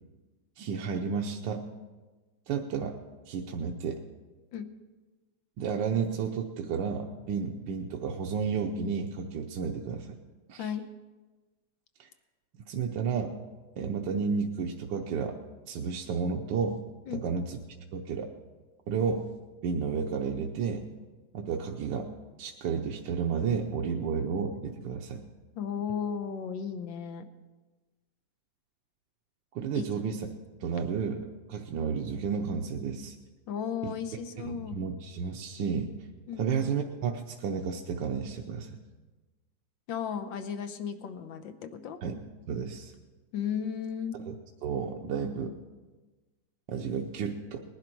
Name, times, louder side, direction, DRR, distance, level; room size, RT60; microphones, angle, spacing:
voice 1, 0.6-1.7 2.5-3.0 3.3-4.0 5.6-10.1 10.5-10.7 12.0-12.1 12.7-13.3 13.8-15.4 15.7-16.8 17.1-17.6 17.9-18.3 18.9-19.2 19.6-20.8 21.3-22.1 22.4-25.2 29.5-30.2 30.6-33.1 33.8-33.9 34.4-35.9 36.4-38.8 42.0-42.2 42.5-42.9 44.3-44.4 44.6-45.5 46.7-47.6, right 6 dB, 75° right, 1 dB, 1.5 m, -32 dB
voice 2, 25.5-27.3 29.7-29.9 33.5-34.8 36.3-36.5 39.9-42.0 43.3-44.2, left 7 dB, 80° left, 8 dB, 1.7 m, -34 dB
20.0 x 11.5 x 4.6 m, 1.3 s
omnidirectional pair, 2.0 m